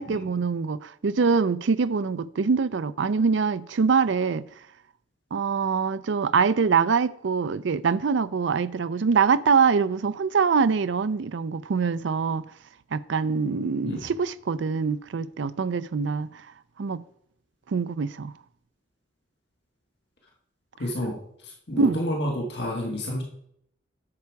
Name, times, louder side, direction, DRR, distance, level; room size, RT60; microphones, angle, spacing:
voice 1, 0.0-4.5 5.3-12.5 12.9-16.3 16.8-17.0 17.7-18.3 21.8-22.0, right 5 dB, 75° right, 0.4 m, -24 dB
voice 2, 20.8-23.2, left 1 dB, 60° left, 1.8 m, -30 dB
9.7 x 6.9 x 4.7 m
head